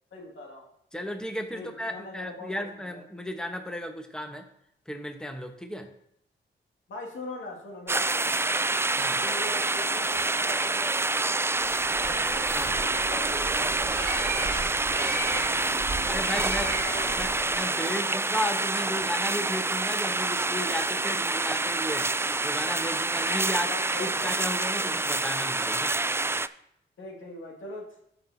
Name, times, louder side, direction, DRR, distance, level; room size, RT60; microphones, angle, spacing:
voice 1, 0.1-0.7 1.5-3.0 6.9-8.7 9.2-16.2 16.6-18.0 23.7-24.5 24.8-25.2 27.0-27.9, left 2 dB, 75° left, 0 dB, 2.2 m, -42 dB
voice 2, 0.9-4.4 4.9-5.9 9.0-9.2 12.5-12.8 16.0-16.7 17.2-22.1 22.4-23.7 24.0-25.9, equal, 5° left, 5 dB, 1.1 m, -34 dB
sound 1, 7.9-26.5, right 2 dB, 10° right, 0.3 m, -27 dB
Bird, 11.6-17.6, right 3 dB, 60° right, 1.4 m, -35 dB
14.0 x 6.0 x 2.8 m, 0.75 s
cardioid pair, 55°, 20 cm